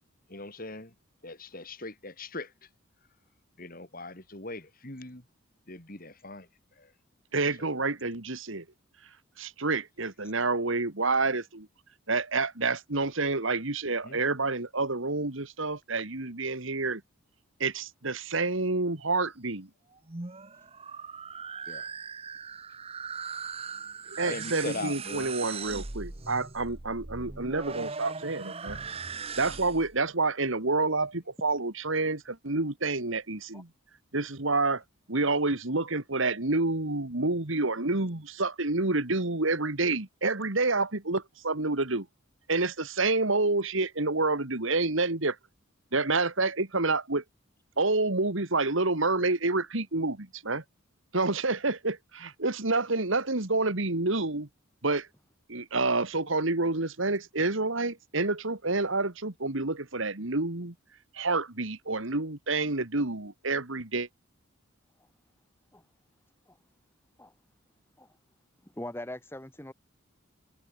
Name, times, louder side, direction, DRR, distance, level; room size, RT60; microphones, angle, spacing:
voice 1, 0.3-0.9 1.2-2.5 3.6-5.2 5.7-6.5 14.0-14.2 21.7-21.9 24.3-25.3, left 2 dB, 40° left, 3.7 m, -40 dB
voice 2, 7.3-8.7 9.4-11.7 12.1-17.0 17.6-19.7 24.1-28.8 29.4-33.7 34.1-34.8 35.1-42.1 42.5-45.4 45.9-47.2 47.8-50.6 51.1-54.5 54.8-55.1 55.5-60.7 61.1-64.1, right 3 dB, 65° right, 2.1 m, -28 dB
sound 1, 19.9-30.0, right 5 dB, 25° right, 1.1 m, -39 dB
voice 3, 68.8-69.7, left 1 dB, 10° left, 1.4 m, -40 dB
head